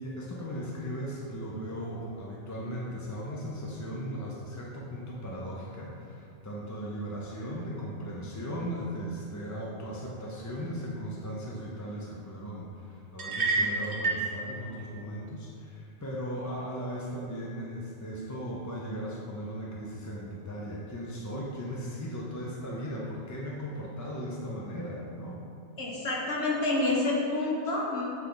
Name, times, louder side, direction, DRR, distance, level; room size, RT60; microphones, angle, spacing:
voice 1, 0.0-25.4, equal, 25° left, -4 dB, 0.4 m, -37 dB
sound 1, 13.2-14.3, right 3 dB, 55° right, 1.0 m, -28 dB
voice 2, 25.8-28.0, left 2 dB, 75° left, -3 dB, 1.4 m, -28 dB
8.2 x 3.4 x 3.9 m, 2.5 s
omnidirectional pair, 1.2 m